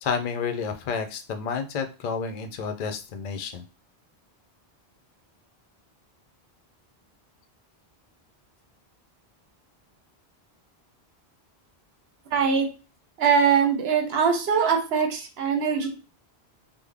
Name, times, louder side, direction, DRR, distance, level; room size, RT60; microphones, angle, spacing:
voice 1, 0.0-3.6, left 6 dB, 55° left, 7 dB, 0.5 m, -30 dB
voice 2, 12.3-12.7 13.2-15.9, right 6 dB, 75° right, 4 dB, 1.0 m, -22 dB
3.5 x 2.0 x 3.3 m, 0.32 s
omnidirectional pair, 1.1 m